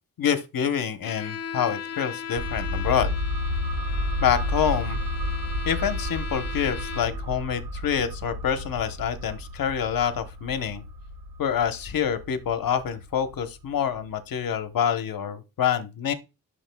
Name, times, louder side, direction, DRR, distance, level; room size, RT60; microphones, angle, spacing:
voice 1, 0.2-3.1 4.2-5.0 5.6-10.8 11.4-16.1, left 8 dB, 80° left, 1.0 m, -26 dB
Bowed string instrument, 1.0-7.3, left 7 dB, 50° left, 0.6 m, -38 dB
sound 1, 2.4-13.7 14.0-14.1, left 1 dB, 80° right, 1.6 m, -32 dB
12.5 x 6.6 x 2.2 m
wide cardioid pair, 175°, 34 cm